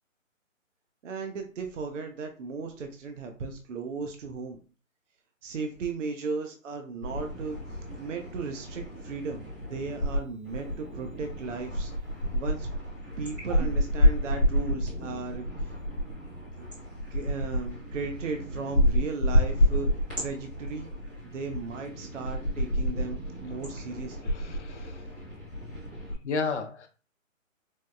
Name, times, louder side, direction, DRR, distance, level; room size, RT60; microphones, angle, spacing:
voice 1, 1.0-4.6 5.4-7.6 8.0-11.9 12.3-12.7 13.2-15.7 16.6-16.7 17.1-19.9 20.2-20.9 21.3-24.3, right 4 dB, 65° right, 4 dB, 0.6 m, -36 dB
sound 1, 7.0-10.2 10.4-26.1, equal, 5° right, 0.5 m, -29 dB
voice 2, 24.3-25.0 26.2-26.9, left 4 dB, 60° left, 7 dB, 0.7 m, -32 dB
4.4 x 2.0 x 2.3 m, 0.36 s
hypercardioid pair, 150°, 40 cm